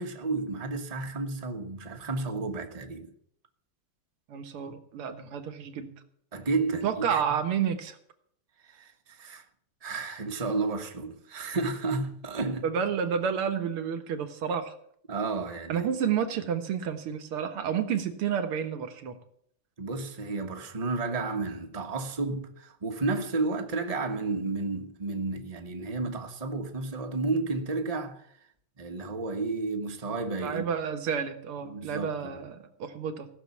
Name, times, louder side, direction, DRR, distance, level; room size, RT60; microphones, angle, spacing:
voice 1, 0.0-3.1 6.3-7.2 8.7-9.4 9.8-12.7 15.1-15.9 19.8-28.2 28.8-30.7 31.6-32.4, right 3 dB, 20° right, 1.0 m, -32 dB
voice 2, 4.3-5.9 6.8-8.0 12.6-14.7 15.7-19.2 30.4-33.3, right 7 dB, 80° right, 2.2 m, -30 dB
16.5 x 6.8 x 8.3 m
omnidirectional pair, 2.4 m